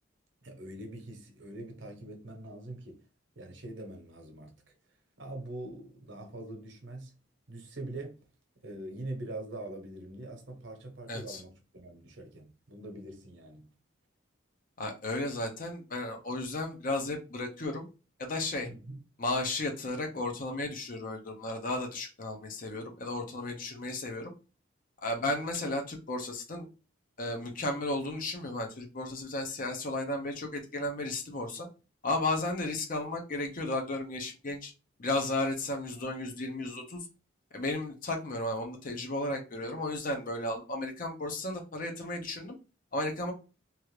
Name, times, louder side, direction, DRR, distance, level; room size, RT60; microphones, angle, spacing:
voice 1, 0.4-3.0 3.4-4.7 5.2-7.1 7.5-8.2 8.6-13.7 18.7-19.0, right 1 dB, 70° right, 0.9 m, -43 dB
voice 2, 11.1-11.4 14.8-17.9 18.2-18.7 19.2-24.3 25.0-26.7 27.2-31.7 32.0-34.7 35.0-37.0 37.5-42.6 42.9-43.3, left 2 dB, 45° left, 0.7 m, -34 dB
3.0 x 2.4 x 3.1 m
head